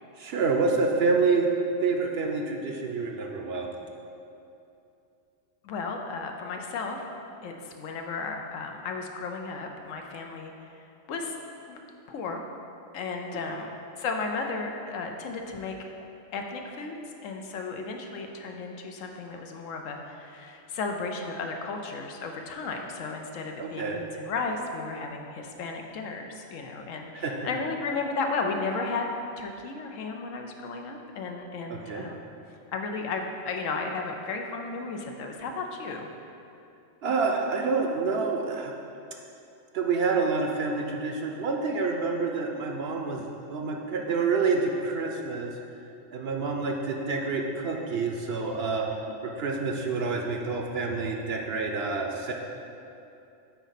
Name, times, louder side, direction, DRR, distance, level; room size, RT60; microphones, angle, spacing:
voice 1, 0.2-1.5 1.8-3.7 23.6-24.0 27.1-27.3 31.7-32.0 37.0-38.7 39.7-45.5 46.1-48.9 49.2-52.3, right 4 dB, 60° right, 2 dB, 0.7 m, -28 dB
voice 2, 5.6-7.1 7.4-11.4 11.7-12.4 12.9-15.7 16.3-32.2 32.7-36.1, left 4 dB, 80° left, 3 dB, 1.0 m, -34 dB
9.2 x 4.1 x 4.1 m, 2.7 s
omnidirectional pair, 1.3 m